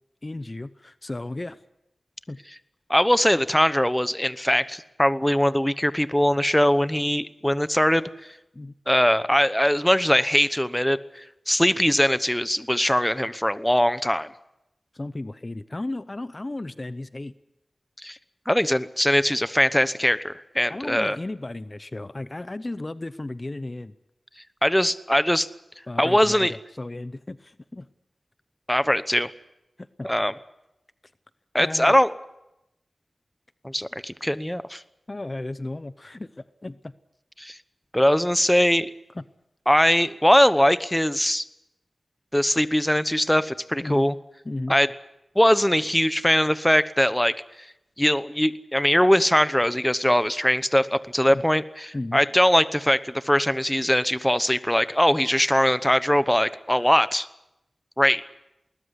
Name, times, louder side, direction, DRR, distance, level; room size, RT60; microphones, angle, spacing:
voice 1, 0.2-1.6 2.3-2.4 8.5-8.7 14.9-17.3 20.7-23.9 25.9-27.9 29.8-30.1 31.6-32.0 35.1-36.9 39.1-39.2 43.8-44.1 44.4-44.8 51.3-51.4 51.9-52.2, left 2 dB, 40° left, 14 dB, 0.7 m, -34 dB
voice 2, 2.9-8.1 8.9-11.0 11.5-14.3 18.0-18.2 18.5-21.2 24.6-25.5 26.0-26.5 28.7-29.3 30.0-30.3 31.5-32.1 33.6-34.8 37.4-37.6 37.9-38.9 39.7-41.5 42.3-44.1 44.7-44.9 45.3-47.3 48.0-57.3 58.0-58.2, equal, 10° left, 14 dB, 1.0 m, -21 dB
20.5 x 19.5 x 8.2 m, 0.88 s
cardioid pair, 50°, 0 cm